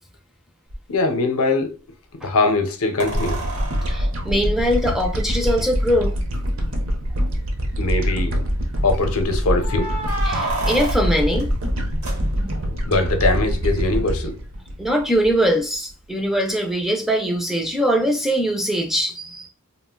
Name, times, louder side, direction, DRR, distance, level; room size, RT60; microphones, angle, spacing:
sound 1, 0.7-0.8 3.0-5.4 6.3-6.4 6.7-6.8 7.4-7.9 9.6-12.7 15.2-15.3, right 1 dB, 80° right, 0.9 m, -30 dB
voice 1, 0.9-1.8 2.2-3.4 7.8-8.4 8.8-9.9 12.8-14.4, left 3 dB, 70° left, 0.6 m, -21 dB
sound 2, 3.1-15.6, equal, 60° right, 0.6 m, -24 dB
voice 2, 3.9-6.2 10.3-11.5 12.4-12.5 14.8-19.5, equal, ahead, 0.3 m, -22 dB
2.4 x 2.1 x 3.6 m
head